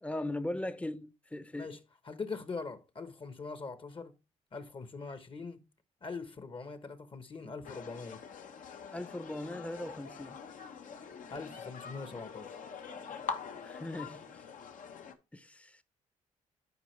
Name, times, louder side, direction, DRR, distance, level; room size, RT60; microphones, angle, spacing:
voice 1, 0.0-1.8 8.9-10.4 13.6-14.3 15.3-15.8, left 1 dB, 10° left, 0.8 m, -39 dB
voice 2, 1.5-4.1 4.5-5.6 6.0-8.2 11.3-12.6, left 4 dB, 35° left, 1.2 m, -42 dB
sound 1, 7.6-15.1, left 6 dB, 65° left, 1.2 m, -44 dB
11.0 x 4.8 x 3.3 m
supercardioid pair, 70°, 14 cm